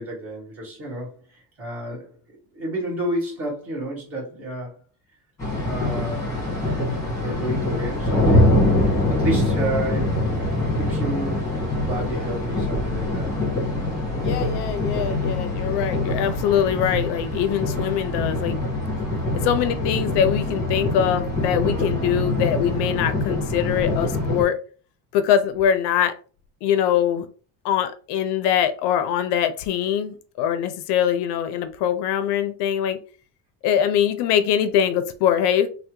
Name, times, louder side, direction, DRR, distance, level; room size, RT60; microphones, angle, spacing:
voice 1, 0.0-2.1 2.5-4.7 5.6-6.3 7.2-10.3 10.7-13.3, right 1 dB, 30° right, 1.6 m, -31 dB
sound 1, 5.4-24.4, left 1 dB, 5° left, 1.2 m, -24 dB
voice 2, 14.2-18.6 19.4-24.6 25.1-26.1 26.6-27.3 27.6-33.0 33.6-35.7, left 9 dB, 70° left, 0.5 m, -23 dB
3.2 x 2.1 x 3.0 m
cardioid pair, 160°, 43 cm